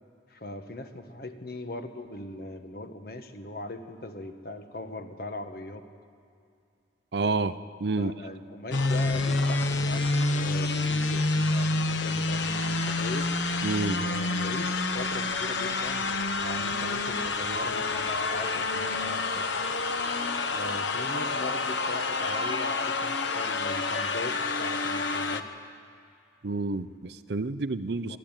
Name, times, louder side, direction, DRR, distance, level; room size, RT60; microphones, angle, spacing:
voice 1, 0.3-5.9 8.0-13.3 14.0-19.5 20.5-25.5 28.1-28.2, left 2 dB, 55° left, 7 dB, 1.4 m, -40 dB
voice 2, 7.1-8.1 13.6-14.0 26.4-28.2, right 3 dB, 65° right, 14 dB, 0.6 m, -29 dB
sound 1, 8.7-25.4, left 3 dB, 80° left, 1.0 m, -28 dB
24.0 x 12.0 x 9.0 m, 2.5 s
head